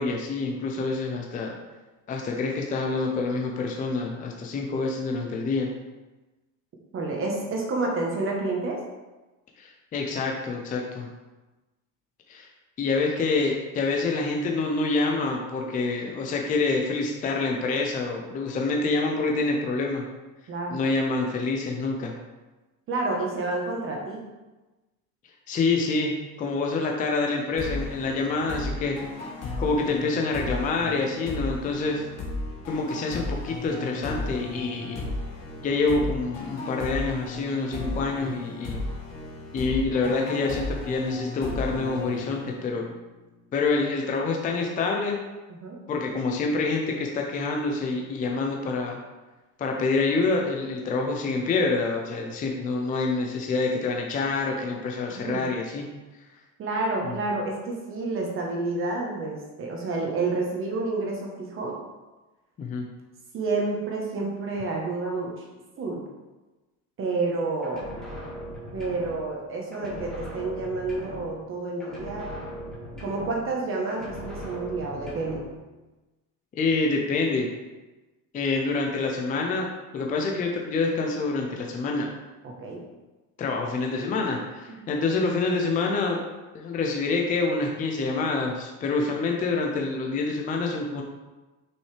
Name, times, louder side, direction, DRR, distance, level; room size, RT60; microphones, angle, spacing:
voice 1, 0.0-1.5 2.1-5.7 9.6-11.1 12.3-12.5 12.8-20.0 20.7-22.1 25.5-29.0 29.6-32.1 32.7-35.1 35.6-38.8 39.5-42.9 43.5-45.2 45.9-49.0 49.6-55.8 62.6-62.8 76.5-77.5 78.3-79.7 79.9-82.1 83.4-86.2 86.5-91.0, left 3 dB, 20° left, 1 dB, 0.5 m, -27 dB
voice 2, 6.9-8.8 20.5-20.8 22.9-24.2 45.6-45.8 55.1-55.4 56.6-61.8 63.3-65.4 65.8-66.0 67.0-67.8 68.7-72.4 73.0-75.4 82.4-82.8 84.7-84.9, right 3 dB, 30° right, -1 dB, 1.1 m, -29 dB
sound 1, 27.6-43.0, left 2 dB, 40° left, 1.3 m, -34 dB
sound 2, 67.6-69.5 69.7-71.5 71.8-73.6 73.9-75.6, equal, ahead, 1.8 m, -39 dB
6.3 x 5.5 x 3.3 m, 1.1 s
cardioid pair, 160°, 40 cm